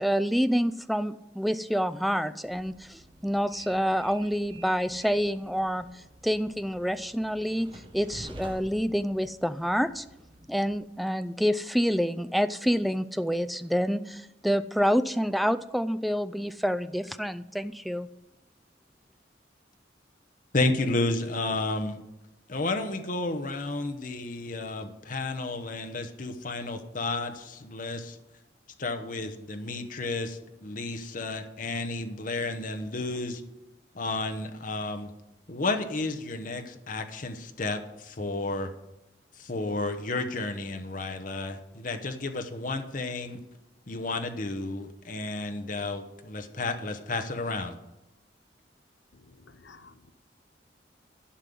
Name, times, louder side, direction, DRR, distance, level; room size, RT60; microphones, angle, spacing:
voice 1, 0.0-10.0 10.5-18.1, equal, ahead, 12 dB, 0.4 m, -27 dB
Train, 2.4-10.8, right 1 dB, 30° right, 1.1 m, -49 dB
voice 2, 20.5-22.0 22.5-28.2 28.8-33.4 33.9-35.1 35.5-38.7 39.4-43.4 43.9-47.7, left 2 dB, 50° left, 6 dB, 1.0 m, -32 dB
voice 3, 49.4-50.1, left 4 dB, 90° left, 12 dB, 0.7 m, -53 dB
11.5 x 5.4 x 7.6 m, 0.94 s
head